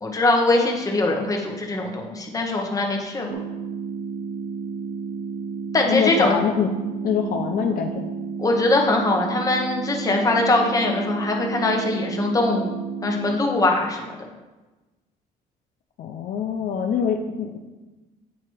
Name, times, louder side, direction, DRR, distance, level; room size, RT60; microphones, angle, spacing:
voice 1, 0.0-3.4 5.7-6.4 8.4-12.7 13.0-14.3, left 2 dB, 20° left, 1 dB, 1.1 m, -22 dB
sound 1, 3.3-13.3, right 5 dB, 80° right, 1.1 m, -32 dB
voice 2, 5.9-6.7 7.0-8.0 16.0-17.6, left 7 dB, 60° left, 3 dB, 0.5 m, -24 dB
8.4 x 2.9 x 4.7 m, 1.1 s
cardioid pair, 110°, 17 cm